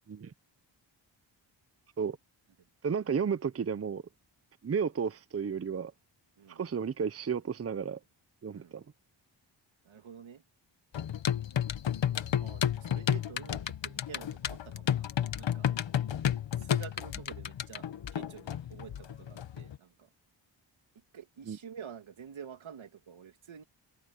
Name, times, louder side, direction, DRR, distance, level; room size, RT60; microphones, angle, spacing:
voice 1, 2.8-4.0 4.6-5.9 6.5-8.0 8.4-8.8 21.5-21.6, right 6 dB, 30° right, 0.7 m, -32 dB
voice 2, 9.8-10.4 12.4-15.1 15.4-15.7 16.6-17.9 18.1-20.1 21.1-23.6, right 8 dB, 85° right, 2.8 m, -48 dB
sound 1, 10.9-19.8, left 9 dB, 70° left, 1.3 m, -32 dB
wide cardioid pair, 90°, 46 cm